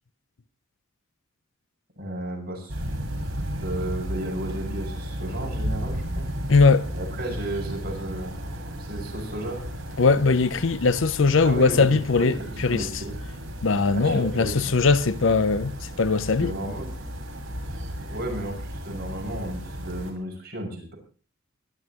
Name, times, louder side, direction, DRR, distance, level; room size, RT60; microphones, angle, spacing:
voice 1, 2.0-2.8 3.6-6.3 6.9-8.3 8.8-9.6 11.4-13.2 13.9-14.7 16.4-16.9 18.1-20.9, right 1 dB, 50° right, 6.5 m, -33 dB
sound 1, 2.7-20.1, equal, 70° right, 5.9 m, -34 dB
voice 2, 6.5-6.9 10.0-12.9 13.6-15.7 16.0-16.5, left 4 dB, 65° left, 0.7 m, -20 dB
24.0 x 12.5 x 3.0 m
head